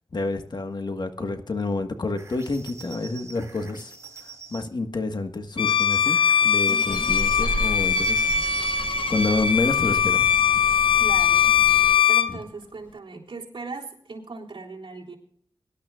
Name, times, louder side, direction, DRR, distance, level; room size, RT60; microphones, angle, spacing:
voice 1, 0.1-3.9 4.5-8.3 9.1-10.3, left 3 dB, 55° left, 7 dB, 1.5 m, -28 dB
sound 1, 2.2-4.7 5.7-8.9, right 5 dB, 35° right, 2.4 m, -45 dB
Bowed string instrument, 5.6-12.4, left 8 dB, 75° left, 0.8 m, -21 dB
voice 2, 6.7-7.1 11.0-15.2, right 3 dB, 65° right, -2 dB, 3.5 m, -38 dB
sound 2, 6.9-11.9, right 1 dB, 15° right, 4.3 m, -35 dB
23.5 x 12.0 x 2.4 m, 0.65 s
wide cardioid pair, 70°, 9 cm